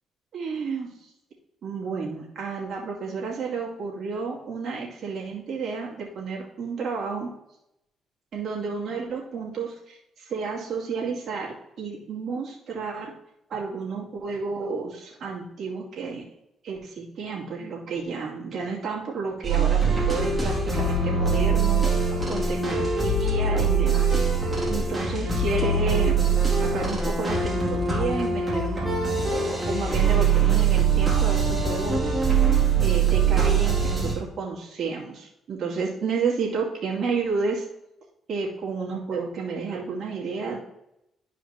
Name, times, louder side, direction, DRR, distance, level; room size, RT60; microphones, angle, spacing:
voice 1, 0.3-1.0 1.6-7.3 8.3-13.1 13.5-16.2 16.6-24.2 24.7-26.2 26.6-29.0 29.7-32.2 32.8-37.6 38.3-40.6, right 4 dB, 65° right, -2 dB, 2.4 m, -31 dB
sound 1, 19.4-34.1, right 5 dB, 15° right, 2.3 m, -23 dB
12.0 x 4.9 x 2.9 m, 0.83 s
cardioid pair, 90°, 0 cm